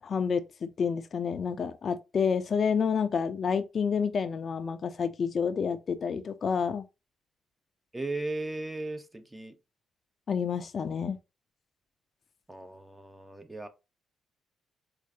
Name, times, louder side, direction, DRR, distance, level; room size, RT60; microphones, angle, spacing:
voice 1, 0.0-6.8 10.3-11.2, left 6 dB, 50° left, 0.4 m, -29 dB
voice 2, 7.9-9.6 12.5-13.7, right 2 dB, 15° right, 0.6 m, -36 dB
4.5 x 2.4 x 2.6 m
cardioid pair, 80°, 0 cm